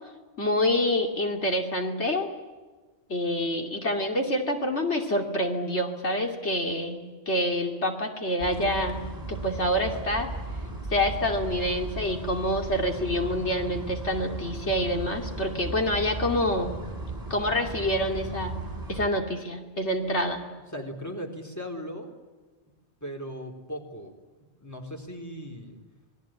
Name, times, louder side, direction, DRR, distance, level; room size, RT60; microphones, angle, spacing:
voice 1, 0.4-2.3 3.1-9.0 9.3-10.3 10.9-16.7 17.3-18.6 18.9-20.4, left 1 dB, 70° left, 3 dB, 3.0 m, -27 dB
sound 1, 8.4-19.1, right 2 dB, 15° right, 4.7 m, -36 dB
voice 2, 20.7-22.1 23.0-24.1 24.6-25.8, equal, 15° left, 2 dB, 4.0 m, -37 dB
27.0 x 21.5 x 9.1 m, 1.3 s
omnidirectional pair, 1.2 m